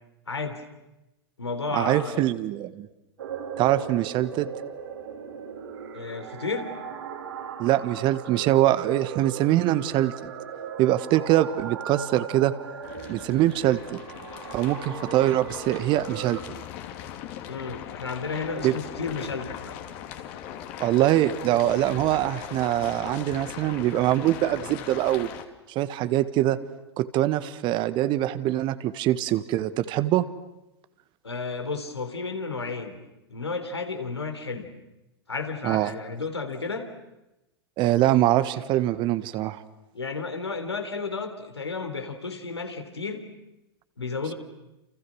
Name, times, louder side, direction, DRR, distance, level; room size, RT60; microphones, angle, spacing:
voice 1, 0.3-0.6 1.4-2.3 5.9-6.7 17.5-19.8 31.2-33.0 33.3-34.7 35.3-36.9 39.9-43.2 44.0-44.3, left 4 dB, 80° left, 6 dB, 3.7 m, -32 dB
voice 2, 1.7-2.9 3.6-4.5 7.6-10.1 10.8-12.5 13.1-14.0 14.5-16.4 18.6-18.8 20.8-25.3 25.7-26.6 27.0-30.2 35.6-35.9 37.8-39.6, right 14 dB, 35° right, 13 dB, 1.5 m, -23 dB
sound 1, 3.2-16.4, right 7 dB, 65° right, 4.4 m, -38 dB
sound 2, 12.8-25.4, left 10 dB, 45° left, 2.7 m, -39 dB
29.5 x 29.0 x 6.4 m, 0.94 s
figure-of-eight pair, 100°, 14 cm